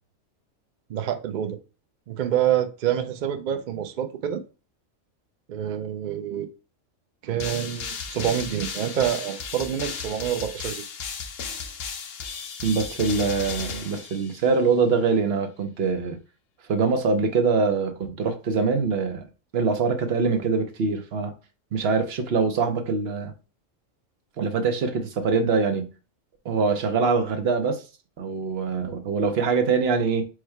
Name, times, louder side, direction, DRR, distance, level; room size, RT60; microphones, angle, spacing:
voice 1, 0.9-1.6 2.1-4.4 5.5-6.5 7.2-10.8, right 10 dB, 75° right, 0.4 m, -27 dB
sound 1, 7.4-14.7, left 5 dB, 55° left, 0.8 m, -35 dB
voice 2, 12.6-16.2 16.7-19.2 19.5-21.3 21.7-23.3 24.4-25.9 26.4-27.8 28.2-30.3, right 4 dB, 55° right, 0.9 m, -23 dB
4.9 x 2.2 x 4.4 m
omnidirectional pair, 1.3 m